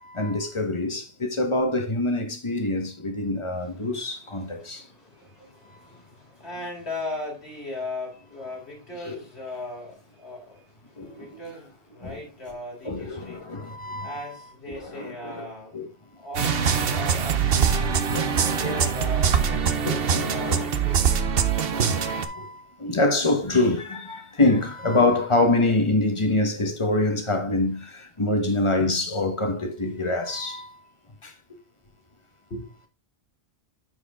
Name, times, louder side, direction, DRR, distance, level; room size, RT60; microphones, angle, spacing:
voice 1, 0.0-4.8 9.0-9.2 11.0-11.4 12.0-12.2 12.8-14.3 14.7-15.9 16.5-17.1 17.8-18.8 19.8-20.7 21.7-30.7 31.2-31.3, left 2 dB, 30° left, 1.4 m, -26 dB
voice 2, 3.5-10.6 11.1-13.7 14.0-15.7 16.2-17.8 18.6-21.2 32.5-32.7, left 2 dB, 75° left, 4.5 m, -38 dB
sound 1, 16.3-22.2, right 7 dB, 65° right, 1.0 m, -23 dB
10.0 x 4.9 x 3.6 m
omnidirectional pair, 1.1 m